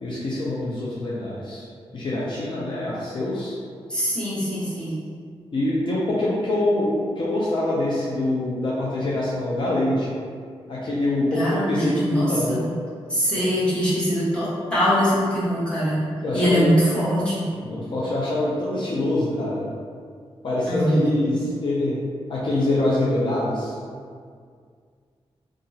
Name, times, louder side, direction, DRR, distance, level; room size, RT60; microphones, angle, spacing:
voice 1, 0.0-1.7 1.9-3.6 5.5-10.1 10.7-12.6 13.4-13.5 16.2-16.7 17.6-19.7 20.4-22.0 22.3-23.8, left 1 dB, 50° left, -7 dB, 0.5 m, -25 dB
voice 2, 3.9-5.0 11.3-12.7 13.1-16.0 16.3-17.5 20.7-21.1, equal, 10° left, -11 dB, 1.1 m, -22 dB
2.8 x 2.4 x 2.7 m, 2.1 s
wide cardioid pair, 95°, 10 cm